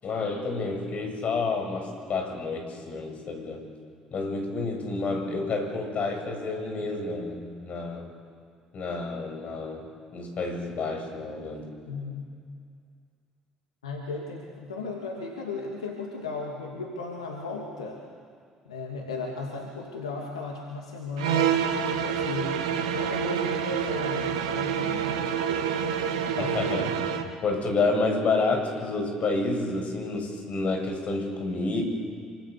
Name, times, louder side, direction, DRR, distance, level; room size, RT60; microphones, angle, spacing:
voice 1, 0.0-3.7 4.1-8.1 8.7-11.8 26.4-31.8, left 3 dB, 50° left, 3 dB, 7.6 m, -29 dB
voice 2, 11.9-12.2 13.8-18.0 18.6-22.5 22.9-25.7 26.2-26.9, left 3 dB, 90° left, 0 dB, 2.6 m, -36 dB
sound 1, 21.2-27.3, right 8 dB, 80° right, 1.9 m, -27 dB
27.5 x 25.5 x 6.9 m, 2.2 s
hypercardioid pair, 55°, 3 cm